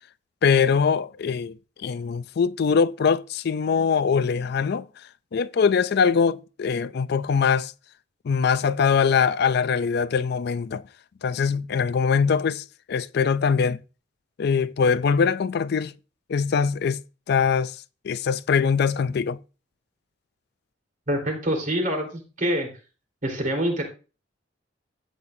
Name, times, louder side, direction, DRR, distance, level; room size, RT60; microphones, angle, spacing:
voice 1, 0.4-1.5 1.8-4.9 5.3-7.7 8.2-10.8 11.2-13.8 14.4-15.9 16.3-17.0 17.3-17.7 18.0-19.4, left 6 dB, 60° left, 0.4 m, -22 dB
voice 2, 21.1-22.7 23.2-23.8, equal, 45° right, 3.8 m, -25 dB
13.5 x 8.6 x 2.7 m
head